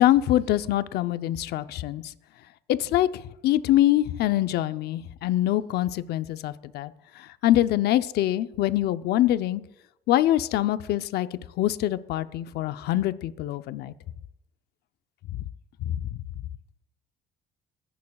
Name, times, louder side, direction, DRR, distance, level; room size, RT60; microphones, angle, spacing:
voice 1, 0.0-2.0 2.7-9.6 10.1-11.3 11.6-13.9 15.3-15.5 15.8-16.1, left 13 dB, 75° left, 12 dB, 0.6 m, -24 dB
23.0 x 11.0 x 2.3 m, 0.85 s
cardioid pair, 110°, 17 cm